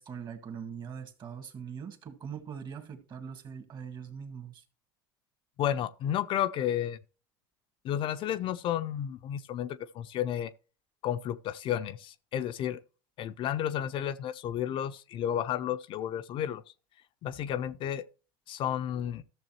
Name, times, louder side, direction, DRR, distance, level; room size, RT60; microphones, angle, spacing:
voice 1, 0.0-4.6, right 7 dB, 40° right, 1.8 m, -42 dB
voice 2, 5.6-7.0 7.8-10.5 11.0-12.8 13.2-16.6 17.2-18.1 18.5-19.2, left 10 dB, 45° left, 0.5 m, -32 dB
14.0 x 6.7 x 3.0 m
hypercardioid pair, 90°, 12 cm